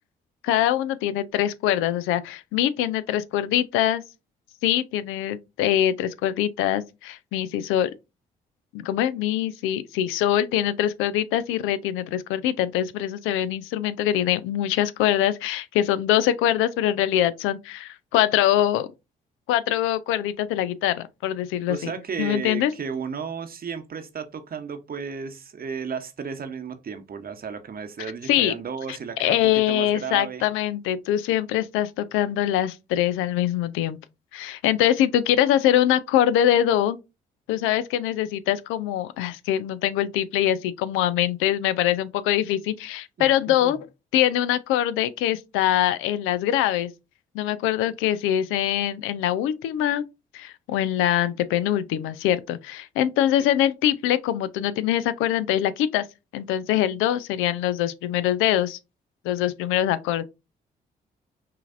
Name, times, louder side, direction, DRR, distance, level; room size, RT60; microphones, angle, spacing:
voice 1, 0.4-4.0 4.6-7.9 8.7-18.9 19.5-21.9 22.2-22.7 28.3-28.5 28.9-34.0 34.3-37.0 37.5-43.8 44.1-46.9 47.3-50.0 50.3-56.0 56.3-58.8 59.2-60.2, left 11 dB, 75° left, 0.4 m, -23 dB
voice 2, 21.7-30.4 43.2-43.7, right 6 dB, 45° right, 0.8 m, -34 dB
5.5 x 2.5 x 2.5 m
hypercardioid pair, 45°, 21 cm